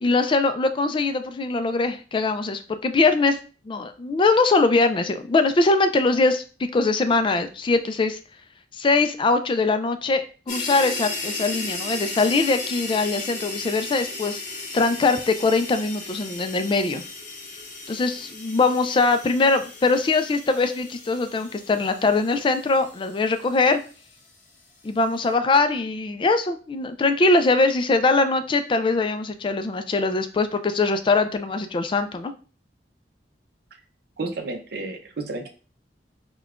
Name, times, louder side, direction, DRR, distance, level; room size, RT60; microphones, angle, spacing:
voice 1, 0.0-3.4 3.7-8.2 8.7-14.4 14.7-17.0 17.9-23.8 24.8-32.3, left 3 dB, 30° left, 9 dB, 0.3 m, -22 dB
sound 1, 10.5-24.1, left 3 dB, 45° left, 0.8 m, -35 dB
voice 2, 34.2-35.5, right 3 dB, 65° right, 4 dB, 0.6 m, -31 dB
5.3 x 2.3 x 2.4 m, 0.37 s
head